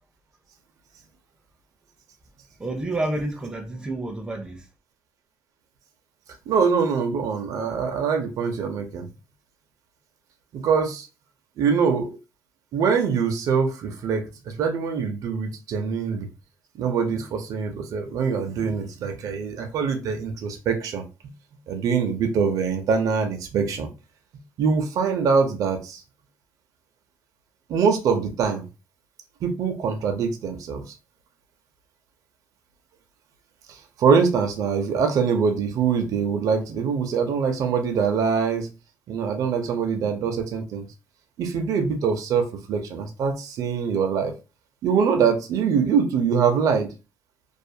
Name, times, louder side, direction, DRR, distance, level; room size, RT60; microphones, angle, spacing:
voice 1, 2.6-4.6, right 2 dB, 15° right, 0.5 m, -29 dB
voice 2, 6.5-9.1 10.5-11.1 11.6-12.2 12.7-16.3 16.7-21.0 21.7-23.9 24.6-26.0 27.7-28.6 29.4-30.8 33.7-38.7 39.1-40.8 41.4-44.3 44.8-46.9, right 6 dB, 65° right, 0.5 m, -23 dB
2.5 x 2.4 x 2.6 m
cardioid pair, 170°, 6 cm